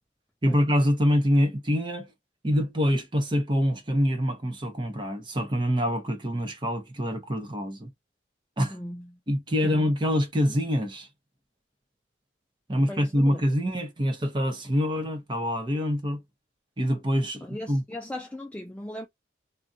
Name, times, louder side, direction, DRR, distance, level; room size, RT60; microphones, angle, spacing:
voice 1, 0.4-2.1 2.4-7.9 8.6-8.8 9.3-11.1 12.7-16.2 16.8-17.8, equal, 25° right, 0.7 m, -25 dB
voice 2, 8.7-9.1 9.6-9.9 12.8-13.4 17.4-19.1, left 1 dB, 5° left, 0.3 m, -38 dB
2.6 x 2.2 x 3.6 m
head